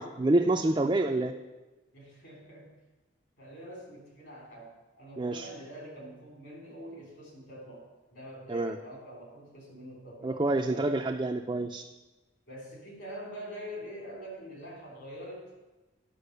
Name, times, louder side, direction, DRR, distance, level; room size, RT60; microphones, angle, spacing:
voice 1, 0.0-1.3 5.2-5.5 8.5-8.7 10.2-11.8, right 2 dB, 20° right, 2 dB, 0.4 m, -27 dB
voice 2, 1.9-2.7 3.4-10.9 12.5-15.5, equal, 60° left, -1 dB, 3.4 m, -45 dB
9.9 x 5.9 x 6.7 m, 1.1 s
head